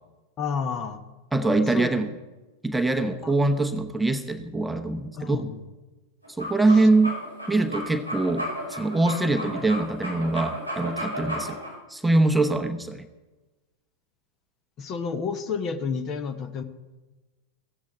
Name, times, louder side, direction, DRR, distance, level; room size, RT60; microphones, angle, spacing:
voice 1, 0.4-1.0 1.7-1.9 3.2-3.3 5.1-5.6 14.8-16.6, left 5 dB, 30° left, 12 dB, 1.1 m, -30 dB
voice 2, 1.3-2.1 2.6-5.5 6.4-7.2 7.5-11.6 11.9-13.1, right 2 dB, 5° right, 6 dB, 1.0 m, -23 dB
sound 1, 6.2-11.7, equal, 90° left, 5.2 m, -33 dB
15.5 x 15.0 x 4.7 m, 1.2 s
figure-of-eight pair, 90°, 0 cm